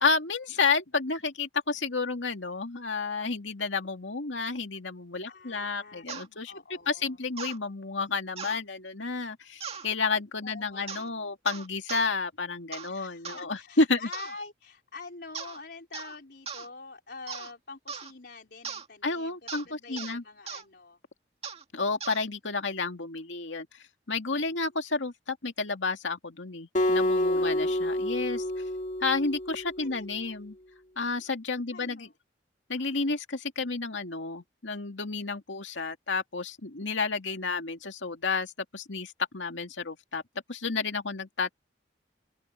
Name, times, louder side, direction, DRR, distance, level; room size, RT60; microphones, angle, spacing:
voice 1, 0.0-6.5 6.9-14.1 19.0-20.2 21.7-23.7 24.1-28.4 29.0-30.6 31.0-32.1 32.7-40.2 40.5-41.5, left 4 dB, 85° left, 2.3 m, -31 dB
voice 2, 5.3-7.3 10.4-11.3 12.9-19.4 19.6-21.0 24.3-24.6 27.2-27.9 29.8-30.4 31.7-32.1, left 4 dB, 60° left, 4.6 m, -46 dB
sound 1, 6.1-6.3 7.4-7.6 8.4-8.6 9.6-9.9 10.9-11.1 11.5-12.1 12.7-12.9 13.2-13.4 14.1-14.4 15.3-15.6 15.9-16.2 16.5-16.7 17.3-17.5 17.9-18.1 18.6-18.9 19.5-19.7 20.0-20.1 20.5-20.6 21.4-21.6 22.0-22.2, right 6 dB, 35° right, 2.1 m, -39 dB
Acoustic guitar, 26.7-30.0, left 1 dB, 40° left, 2.9 m, -28 dB
open air
head